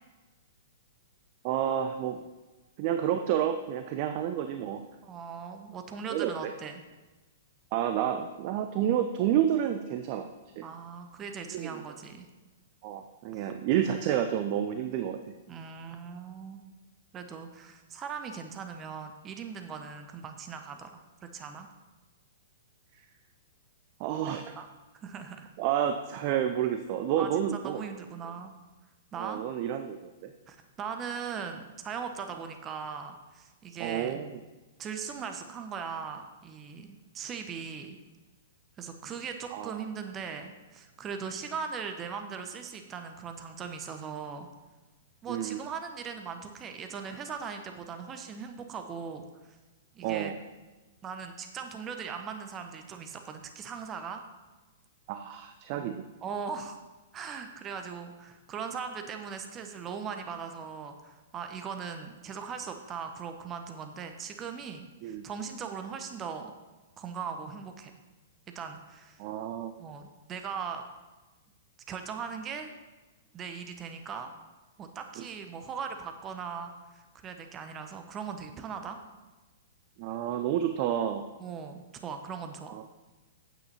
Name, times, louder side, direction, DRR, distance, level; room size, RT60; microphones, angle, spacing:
voice 1, 1.4-2.2 2.8-4.8 6.1-6.5 7.7-10.3 10.6-10.7 11.5-11.8 12.8-15.2 24.0-24.5 25.6-27.8 29.1-30.3 33.8-34.3 39.5-39.7 45.3-45.6 50.0-50.4 55.1-56.0 65.0-65.3 69.2-69.7 75.2-75.3 80.0-81.3 82.7-82.8, right 10 dB, 40° right, 7 dB, 0.5 m, -30 dB
voice 2, 5.0-6.8 10.6-12.3 13.3-13.5 15.5-16.6 17.1-21.7 24.6-24.7 24.9-25.5 27.2-28.5 29.1-29.4 30.5-34.2 34.8-38.0 38.8-44.5 45.2-49.2 49.9-50.3 51.0-54.2 55.8-55.9 56.2-56.8 57.1-66.5 67.0-67.9 68.5-69.2 69.8-70.8 71.9-72.7 73.3-74.3 74.8-79.0 81.4-82.8, right 6 dB, 25° right, 6 dB, 0.9 m, -39 dB
9.1 x 7.8 x 4.2 m, 1.2 s
figure-of-eight pair, 110°, 0 cm